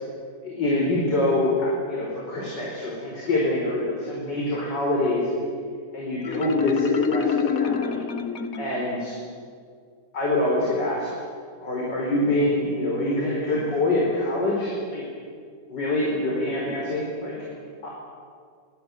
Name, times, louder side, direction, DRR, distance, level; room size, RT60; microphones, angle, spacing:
voice 1, 0.4-5.3 5.9-8.1 8.6-9.2 10.1-11.1 11.6-15.0 15.7-17.4 17.8-17.9, left 1 dB, 85° left, -3 dB, 5.4 m, -25 dB
Marimba xylophone, 6.2-9.0, left 7 dB, 55° left, 1.6 m, -26 dB
23.5 x 21.0 x 9.4 m, 2.1 s
omnidirectional pair, 1.9 m